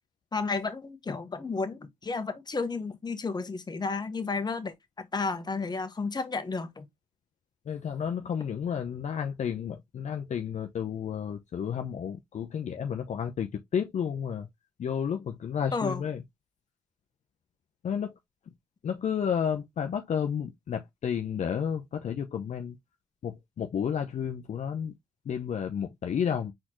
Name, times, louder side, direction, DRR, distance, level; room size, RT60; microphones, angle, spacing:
voice 1, 0.3-6.9 15.7-16.0, left 4 dB, 30° left, 1.1 m, -32 dB
voice 2, 7.7-14.5 14.8-16.2 17.8-18.1 18.8-22.7 23.2-24.9 25.3-26.5, left 8 dB, 55° left, 0.6 m, -31 dB
4.3 x 3.7 x 2.9 m
cardioid pair, 70°, 14 cm